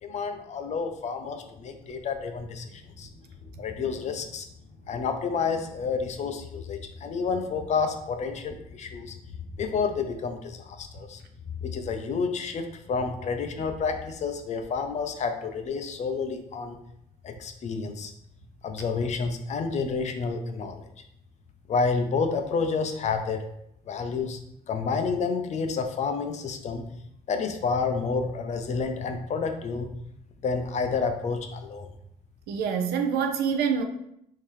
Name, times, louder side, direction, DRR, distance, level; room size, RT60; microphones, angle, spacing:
voice 1, 0.0-3.1 3.6-4.5 4.9-9.2 9.6-11.2 11.6-16.8 17.2-18.1 18.6-20.7 21.7-23.5 23.9-24.4 24.7-26.8 27.3-29.9 30.4-31.9, left 5 dB, 45° left, 6 dB, 0.5 m, -29 dB
voice 2, 32.5-33.8, right 6 dB, 70° right, 6 dB, 0.5 m, -26 dB
3.6 x 2.7 x 3.1 m, 0.76 s
cardioid pair, 110°, 17 cm